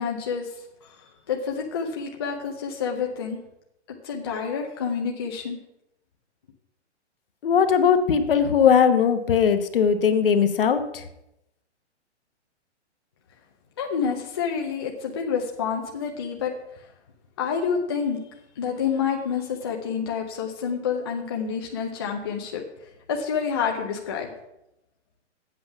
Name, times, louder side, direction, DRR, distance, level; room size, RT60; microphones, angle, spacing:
voice 1, 0.0-3.4 4.0-5.6 13.8-16.8 17.4-18.2 18.6-24.3, left 6 dB, 20° left, 0 dB, 0.6 m, -28 dB
voice 2, 7.4-11.0, left 7 dB, 50° left, 8 dB, 1.0 m, -19 dB
8.4 x 8.0 x 5.8 m, 0.85 s
hypercardioid pair, 170°, 35 cm